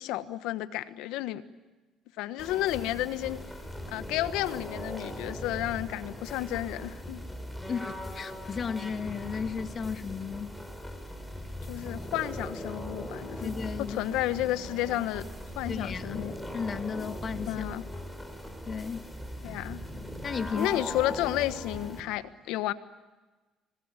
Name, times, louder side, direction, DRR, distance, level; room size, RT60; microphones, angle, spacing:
voice 1, 0.0-1.4 2.2-3.4 3.9-7.2 11.7-13.5 13.8-15.2 15.5-16.3 17.4-17.8 19.4-19.8 20.5-22.7, left 14 dB, 80° left, 1.3 m, -32 dB
sound 1, 2.4-22.0, equal, 5° left, 5.0 m, -40 dB
voice 2, 7.7-10.6 13.4-14.1 15.7-16.3 16.5-17.6 18.7-19.1 20.2-20.8, left 6 dB, 45° left, 1.8 m, -34 dB
25.5 x 20.5 x 9.8 m
supercardioid pair, 75°, 0 cm